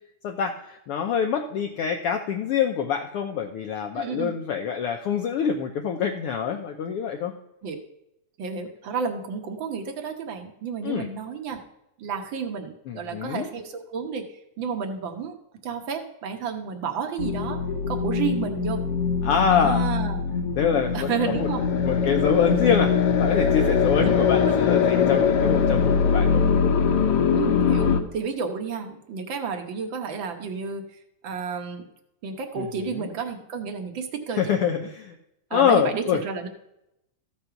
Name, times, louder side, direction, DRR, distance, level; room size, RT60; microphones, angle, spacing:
voice 1, 0.2-7.3 10.8-11.1 12.9-13.5 19.2-19.8 20.6-26.4 32.6-33.1 34.4-35.2 35.5-36.2, left 7 dB, 85° left, 4 dB, 1.3 m, -25 dB
voice 2, 4.0-4.3 7.6-7.8 8.4-11.6 12.0-15.3 15.6-17.6 17.9-18.8 19.5-20.2 20.9-21.6 24.0-24.6 27.4-31.9 32.2-34.9 35.5-36.5, right 6 dB, 60° right, 5 dB, 1.3 m, -31 dB
sound 1, 17.2-28.0, left 6 dB, 65° left, 1.6 m, -22 dB
14.0 x 5.4 x 5.7 m, 0.84 s
omnidirectional pair, 3.4 m